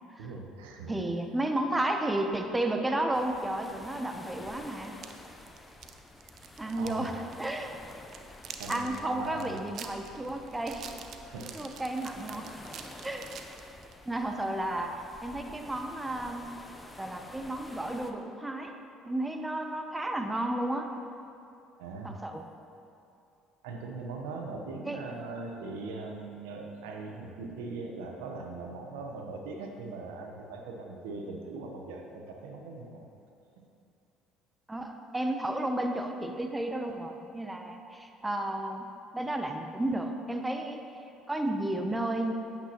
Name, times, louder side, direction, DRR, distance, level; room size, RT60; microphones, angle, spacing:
voice 1, 0.2-1.0 6.8-7.1 8.6-9.6 10.2-10.3 11.3-11.6 21.8-22.2 23.6-33.1 33.6-33.7, right 3 dB, 85° right, 2 dB, 0.9 m, -40 dB
voice 2, 0.9-5.0 6.6-7.1 7.4-7.8 8.7-10.9 11.5-12.6 13.0-13.2 14.1-16.5 17.0-18.8 19.1-20.9 22.0-22.4 24.9-25.0 34.7-38.9 39.1-40.8 41.3-42.3, right 1 dB, 15° right, 4 dB, 0.7 m, -32 dB
sound 1, 3.1-18.1, left 2 dB, 20° left, 0.7 m, -50 dB
sound 2, 4.8-7.1 7.3-7.5 7.9-14.0, right 7 dB, 60° right, 0.6 m, -46 dB
8.8 x 8.5 x 3.0 m, 2.7 s
supercardioid pair, 75°, 0 cm